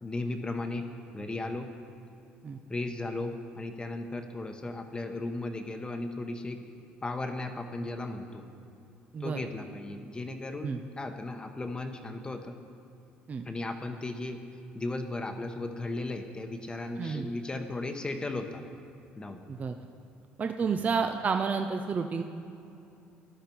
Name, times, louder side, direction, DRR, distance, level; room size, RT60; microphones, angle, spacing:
voice 1, 0.0-0.9 1.1-1.7 2.7-6.6 7.0-8.4 9.2-12.5 13.4-14.4 14.7-18.6 19.2-19.4 20.6-20.8, left 2 dB, 20° left, 5 dB, 1.0 m, -36 dB
voice 2, 17.0-17.3 19.5-19.8 20.4-22.2, right 5 dB, 35° right, 6 dB, 0.6 m, -30 dB
13.5 x 11.0 x 4.6 m, 2.7 s
supercardioid pair, 85°, 4 cm